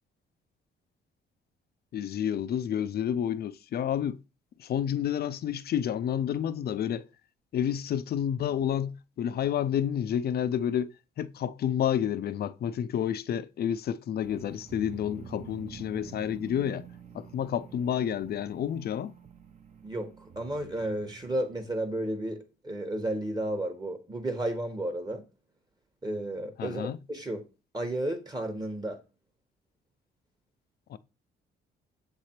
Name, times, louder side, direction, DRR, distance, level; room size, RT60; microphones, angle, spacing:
voice 1, 1.9-4.2 4.6-7.1 7.5-10.9 11.2-16.9 17.1-19.1 26.6-27.0 30.9-31.0, left 9 dB, 50° left, 0.4 m, -30 dB
sound 1, 14.2-21.9, right 6 dB, 40° right, 0.8 m, -48 dB
voice 2, 19.8-25.2 26.0-27.4 27.7-29.0, right 1 dB, 20° right, 1.1 m, -33 dB
6.8 x 3.3 x 4.3 m
cardioid pair, 90°, 20 cm